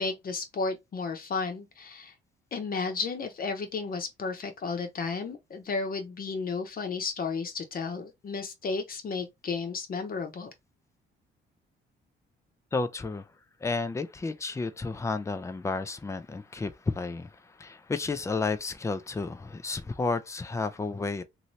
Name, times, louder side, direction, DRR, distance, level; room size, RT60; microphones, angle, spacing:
voice 1, 0.0-2.1 2.5-10.5, left 4 dB, 45° left, 0.9 m, -33 dB
voice 2, 12.7-13.3 13.6-21.2, left 3 dB, 15° left, 0.4 m, -32 dB
2.7 x 2.7 x 3.1 m
cardioid pair, 90°, 20 cm